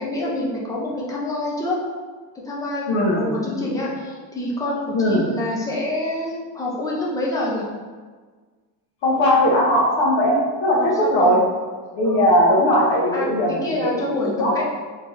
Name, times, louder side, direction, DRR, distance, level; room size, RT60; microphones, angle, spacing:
voice 1, 0.0-1.8 2.4-7.7 10.8-11.3 12.0-12.3 13.1-14.6, left 1 dB, 10° left, -4 dB, 0.4 m, -27 dB
voice 2, 2.9-3.2 3.5-3.7 4.9-5.2 9.0-11.4 11.9-14.0 14.4-14.6, equal, 65° left, -3 dB, 1.4 m, -19 dB
3.5 x 3.3 x 3.9 m, 1.5 s
cardioid pair, 175°, 45 cm